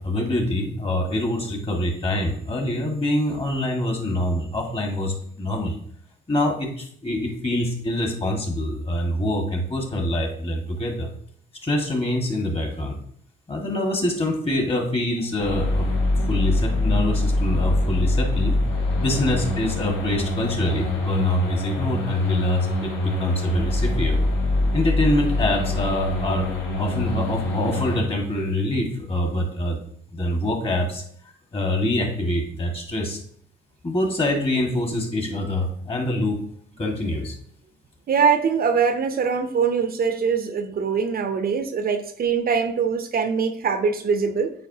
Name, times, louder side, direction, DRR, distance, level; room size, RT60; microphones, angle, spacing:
voice 1, 0.0-5.8 6.3-11.1 11.6-13.0 13.5-15.9 16.3-18.6 19.0-24.2 24.7-31.0 31.5-33.2 33.8-36.4 36.8-37.4, left 1 dB, 30° left, 1 dB, 1.7 m, -25 dB
sound 1, 15.4-28.0, left 2 dB, 65° left, 2.7 m, -24 dB
voice 2, 38.1-44.5, right 6 dB, 50° right, 9 dB, 0.6 m, -22 dB
8.6 x 4.3 x 2.8 m, 0.63 s
cardioid pair, 90°, 20 cm